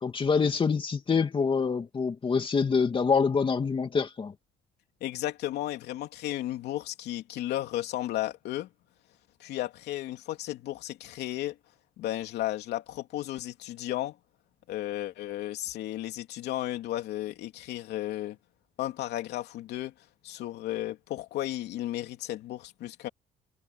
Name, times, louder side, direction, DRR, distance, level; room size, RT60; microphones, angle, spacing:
voice 1, 0.0-4.3, left 5 dB, 30° left, 2.6 m, -26 dB
voice 2, 5.0-8.7 9.4-11.6 12.0-14.2 14.7-18.4 18.8-19.9 20.2-23.1, left 14 dB, 75° left, 3.1 m, -34 dB
cardioid pair, 110°, 17 cm